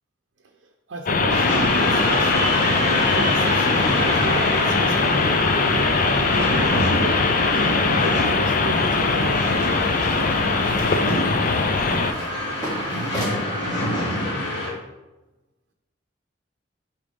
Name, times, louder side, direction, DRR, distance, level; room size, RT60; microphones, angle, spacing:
voice 1, 0.9-2.5 3.0-9.5, right 2 dB, 80° right, 3 dB, 0.6 m, -32 dB
sound 1, 1.1-12.1, left 4 dB, 45° left, 0.5 m, -21 dB
sound 2, 1.3-14.7, left 1 dB, 65° left, 2.1 m, -25 dB
sound 3, 7.9-13.4, equal, 20° left, 1.8 m, -38 dB
8.8 x 4.5 x 3.5 m, 1.1 s
head